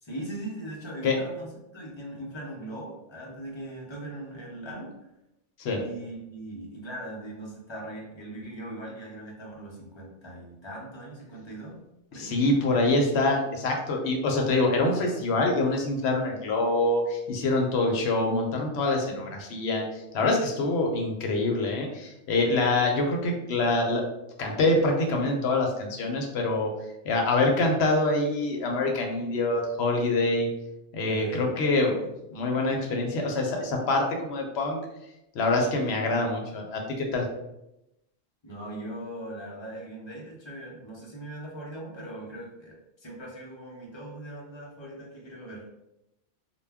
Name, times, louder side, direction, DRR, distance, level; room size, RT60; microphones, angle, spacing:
voice 1, 0.0-4.9 5.7-11.8 12.1-12.8 31.1-31.5 38.4-45.7, right 1 dB, 35° left, -3 dB, 0.4 m, -40 dB
voice 2, 12.1-19.8 20.1-24.0 24.4-26.7 27.0-30.5 30.9-31.9 32.3-34.8 35.3-37.2, left 2 dB, 65° left, 1 dB, 0.8 m, -25 dB
2.2 x 2.1 x 3.4 m, 0.89 s
omnidirectional pair, 1.2 m